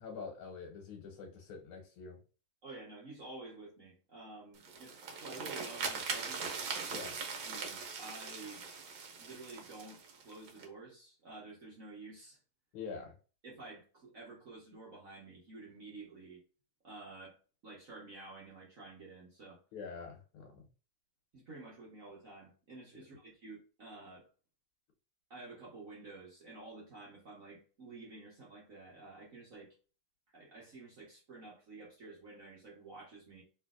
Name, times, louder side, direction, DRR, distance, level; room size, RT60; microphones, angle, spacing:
voice 1, 0.0-2.2 6.9-7.2 12.7-13.2 19.7-20.7 22.9-23.0, left 5 dB, 85° left, 2 dB, 1.7 m, -46 dB
voice 2, 2.6-6.5 7.4-8.6 9.1-10.0 10.2-12.4 13.4-16.4 16.8-17.4 17.6-19.6 21.3-24.3 25.3-29.7 30.3-33.4, right 3 dB, 50° right, -5 dB, 1.2 m, -51 dB
sound 1, 4.5-10.6, right 5 dB, 65° right, 1.4 m, -41 dB
3.3 x 3.1 x 2.3 m, 0.35 s
omnidirectional pair, 2.3 m